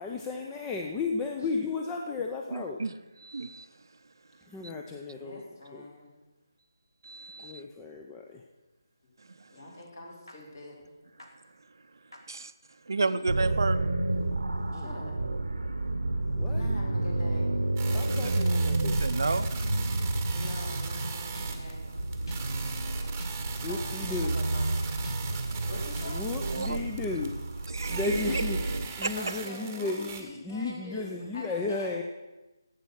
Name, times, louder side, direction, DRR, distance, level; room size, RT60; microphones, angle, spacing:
voice 1, 0.0-2.8 4.5-5.4 5.7-5.9 7.4-8.4 14.5-15.0 16.3-16.7 17.9-19.0 23.6-24.4 26.0-28.6 29.0-32.0, left 3 dB, 10° left, 1 dB, 0.6 m, -34 dB
voice 2, 2.5-2.9 3.2-3.7 7.0-7.6 9.6-9.7 12.3-12.5 12.9-13.8 18.2-18.3 19.0-19.5 22.8-22.9 26.5-26.8 27.7-28.0 29.0-29.1, right 3 dB, 65° right, 12 dB, 0.6 m, -31 dB
voice 3, 5.2-6.1 9.5-10.8 13.1-13.2 14.7-15.1 16.5-17.6 20.3-22.0 23.7-24.9 25.7-26.2 29.2-29.9 30.2-31.4 31.7-31.9, left 2 dB, 45° left, -2 dB, 3.8 m, -44 dB
sound 1, 10.3-10.4 11.2-11.3 12.1-12.2 20.4-20.8 21.3-21.8 22.3-22.7 23.2-23.6 24.1-24.5 25.0-25.5 26.0-26.4, left 2 dB, 80° left, 2.3 m, -47 dB
sound 2, 13.3-28.9, right 2 dB, 85° right, 0.9 m, -30 dB
sound 3, 17.8-30.2, right 6 dB, 20° right, 1.1 m, -42 dB
11.5 x 8.4 x 6.4 m, 1.1 s
figure-of-eight pair, 160°, 2 cm